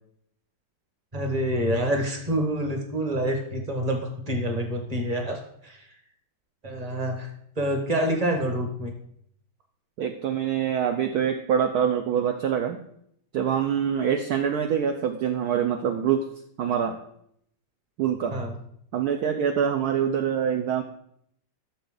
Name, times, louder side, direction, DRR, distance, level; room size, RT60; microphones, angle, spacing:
voice 1, 1.1-5.9 6.6-7.3 7.6-8.9 18.3-18.5, right 1 dB, 20° right, 3 dB, 1.5 m, -27 dB
voice 2, 10.0-12.8 13.3-16.3 16.6-17.0 18.0-18.4 18.9-20.8, right 8 dB, 65° right, 6 dB, 1.1 m, -25 dB
12.5 x 6.9 x 3.9 m, 0.70 s
omnidirectional pair, 2.0 m